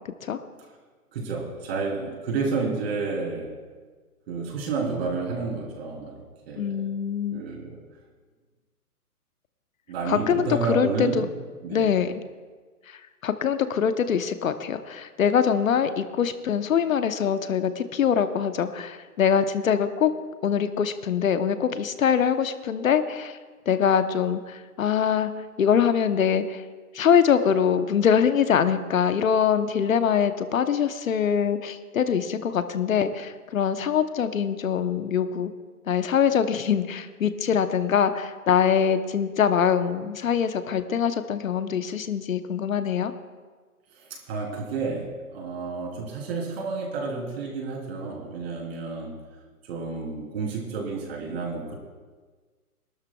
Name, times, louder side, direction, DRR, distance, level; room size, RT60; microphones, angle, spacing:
voice 1, 1.1-3.6 4.3-6.9 7.3-7.8 9.9-11.3 11.6-12.0 43.9-49.2 49.6-51.7, right 4 dB, 40° right, 0 dB, 3.6 m, -30 dB
voice 2, 6.6-7.4 10.1-11.3 11.7-12.2 12.9-20.1 20.4-23.4 23.7-26.6 26.9-35.5 35.9-43.1, left 7 dB, 60° left, 10 dB, 0.9 m, -23 dB
23.0 x 12.5 x 2.3 m, 1.4 s
hypercardioid pair, 150°, 46 cm